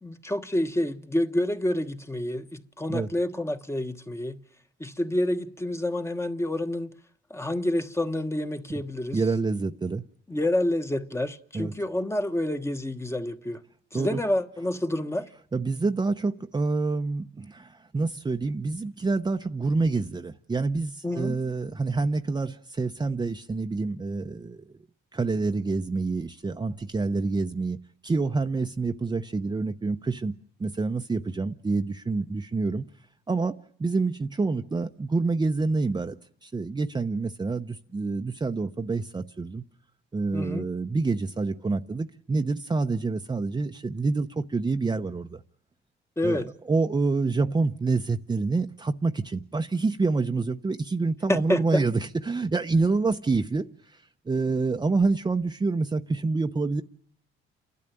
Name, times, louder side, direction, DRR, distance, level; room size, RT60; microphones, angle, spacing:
voice 1, 0.0-4.4 4.8-6.9 7.3-9.2 10.3-13.6 13.9-15.3 21.0-21.4 40.3-40.7 46.2-46.5 51.3-51.8, left 1 dB, 15° left, 1.3 m, -28 dB
voice 2, 9.1-10.0 11.5-11.7 13.9-14.2 15.5-24.6 25.1-27.8 28.0-30.3 30.6-32.8 33.3-36.1 36.4-39.6 40.1-45.4 46.2-56.8, right 3 dB, 20° right, 0.8 m, -27 dB
29.5 x 12.5 x 9.1 m
cardioid pair, 90°, 20 cm